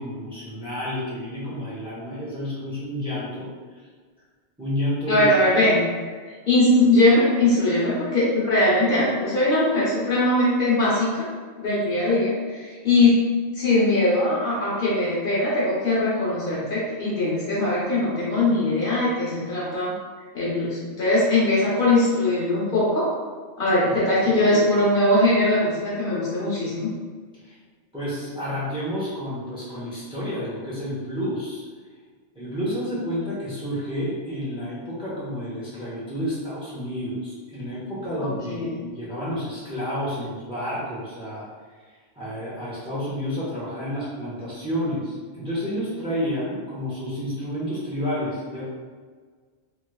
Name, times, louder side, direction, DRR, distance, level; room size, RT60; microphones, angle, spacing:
voice 1, 0.0-3.5 4.6-5.2 24.3-24.8 27.4-27.6 27.9-31.6 32.3-38.7 38.9-41.5 42.2-48.6, equal, 5° right, -9 dB, 0.9 m, -30 dB
voice 2, 5.1-5.8 6.5-11.1 11.6-13.2 13.5-19.9 20.3-23.1 23.6-26.9 38.2-38.9, left 2 dB, 55° left, -8 dB, 1.1 m, -21 dB
3.2 x 3.1 x 2.3 m, 1.6 s
omnidirectional pair, 1.1 m